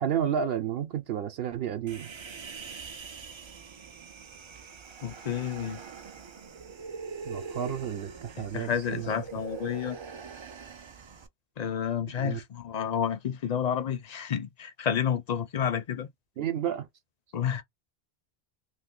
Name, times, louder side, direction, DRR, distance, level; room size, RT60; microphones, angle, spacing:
voice 1, 0.0-2.1 7.3-9.1 12.2-12.4 16.4-16.9, right 9 dB, 70° right, 0.8 m, -31 dB
Human voice, 1.9-11.3, right 5 dB, 50° right, 0.3 m, -43 dB
voice 2, 5.0-5.8 8.4-10.0 11.6-16.1 17.3-17.6, left 8 dB, 55° left, 0.5 m, -30 dB
2.5 x 2.4 x 3.6 m
omnidirectional pair, 1.1 m